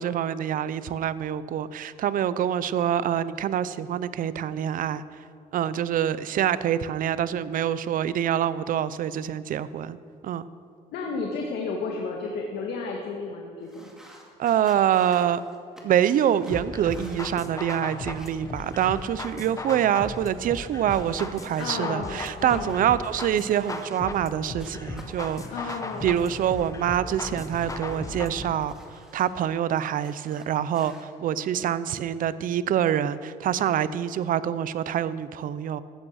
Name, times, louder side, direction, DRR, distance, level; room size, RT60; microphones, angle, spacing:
voice 1, 0.0-5.0 5.5-10.0 10.2-10.5 14.4-15.4 15.8-25.4 26.0-28.7 29.1-35.8, right 10 dB, 55° right, 15 dB, 0.6 m, -25 dB
voice 2, 10.9-13.9 21.6-22.8 25.5-26.1, left 4 dB, 75° left, 0 dB, 1.8 m, -32 dB
sound 1, 13.6-21.7 22.3-24.3 24.6-26.7 27.1-29.5 29.8-31.0, right 1 dB, 5° right, 2.3 m, -51 dB
sound 2, 16.5-28.5, left 2 dB, 20° left, 1.2 m, -37 dB
15.0 x 9.1 x 6.4 m, 2.3 s
cardioid pair, 110°, 17 cm